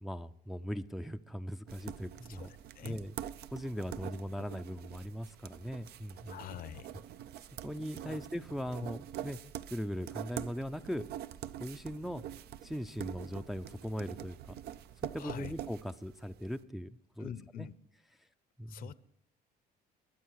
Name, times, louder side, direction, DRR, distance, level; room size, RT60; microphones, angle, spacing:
voice 1, 0.0-2.5 2.8-3.1 3.5-6.4 7.6-9.4 9.7-11.1 11.6-12.2 12.6-14.6 15.0-17.7 18.6-18.9, equal, ahead, 7 dB, 0.4 m, -39 dB
sound 1, 1.7-16.5, right 11 dB, 70° right, 0.6 m, -45 dB
voice 2, 2.3-3.0 6.3-6.9 8.0-8.2 15.2-15.5 17.2-17.7 18.7-18.9, left 10 dB, 60° left, 17 dB, 0.7 m, -45 dB
22.0 x 8.2 x 4.7 m, 0.68 s
cardioid pair, 110°, 17 cm